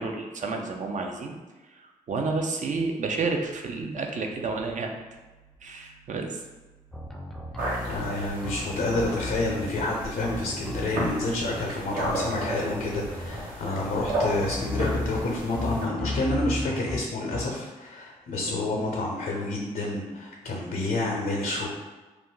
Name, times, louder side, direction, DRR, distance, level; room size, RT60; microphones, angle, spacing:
voice 1, 0.0-1.4 1.7-4.9 5.6-6.4, right 3 dB, 55° right, 3 dB, 0.5 m, -30 dB
sound 1, 6.9-8.1 8.4-9.9 10.2-11.6 12.0-13.4 13.8-15.2 15.5-17.0 17.3-17.4, left 1 dB, ahead, 0.5 m, -35 dB
sound 2, 7.6-15.9, right 1 dB, 75° right, 1.0 m, -34 dB
voice 2, 7.8-21.7, left 2 dB, 70° left, -1 dB, 0.7 m, -29 dB
2.4 x 2.2 x 3.7 m, 1.2 s
supercardioid pair, 45°, 16 cm